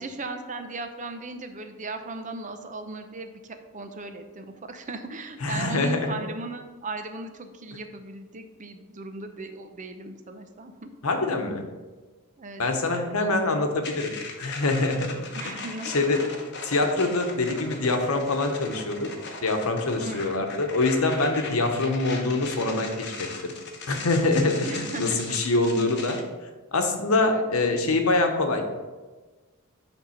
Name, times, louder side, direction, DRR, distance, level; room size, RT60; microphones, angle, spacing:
voice 1, 0.0-10.9 12.4-12.6 13.2-13.3 15.3-16.2 20.0-20.4 24.6-25.4 27.2-27.4, right 2 dB, 35° right, 7 dB, 0.6 m, -37 dB
voice 2, 5.4-6.2 11.0-11.6 12.6-14.1 14.4-16.3 16.6-19.1 19.4-23.5 23.9-26.2 26.7-28.6, left 2 dB, 90° left, 5 dB, 1.0 m, -25 dB
sound 1, 13.8-26.2, left 4 dB, 55° left, 1.1 m, -39 dB
9.2 x 3.5 x 5.7 m, 1.3 s
head